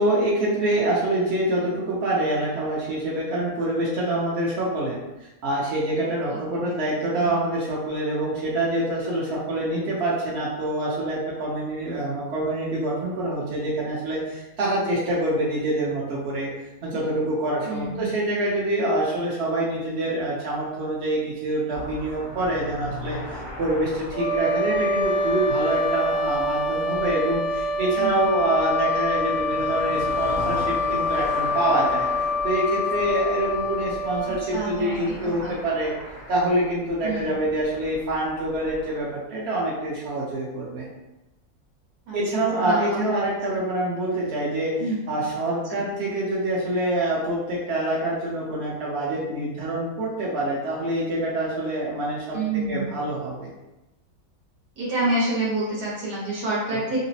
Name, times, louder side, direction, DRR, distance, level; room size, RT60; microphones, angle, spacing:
voice 1, 0.0-5.0 5.4-16.5 16.8-32.0 32.4-35.9 36.3-40.8 42.1-44.8 45.1-52.4 52.7-53.5 56.7-56.8, right 1 dB, 55° right, -6 dB, 0.8 m, -26 dB
voice 2, 17.6-18.1 28.0-28.2 34.5-35.6 37.0-37.3 42.1-43.1 44.8-45.0 45.7-45.9 52.3-52.9 54.8-57.0, right 2 dB, 75° right, -7 dB, 1.4 m, -28 dB
sound 1, 21.7-39.0, left 1 dB, 60° left, 0.7 m, -39 dB
sound 2, 24.1-35.1, left 2 dB, 80° left, 1.1 m, -26 dB
3.9 x 2.0 x 2.7 m, 0.98 s
omnidirectional pair, 1.7 m